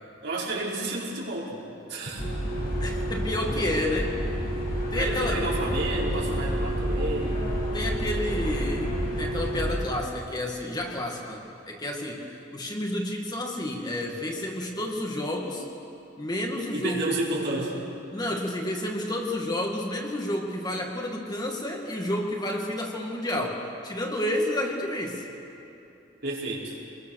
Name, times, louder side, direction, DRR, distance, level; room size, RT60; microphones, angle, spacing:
voice 1, 0.2-1.6 1.9-2.2 4.9-7.5 16.7-17.8 26.2-26.8, right 2 dB, 60° right, -5 dB, 5.0 m, -31 dB
sound 1, 2.2-9.8, equal, 50° left, 5.6 m, -29 dB
voice 2, 2.8-4.1 4.9-5.4 7.7-15.6 16.2-17.1 18.1-25.3, left 1 dB, 20° left, 0 dB, 2.2 m, -30 dB
26.5 x 21.5 x 6.6 m, 2.9 s
head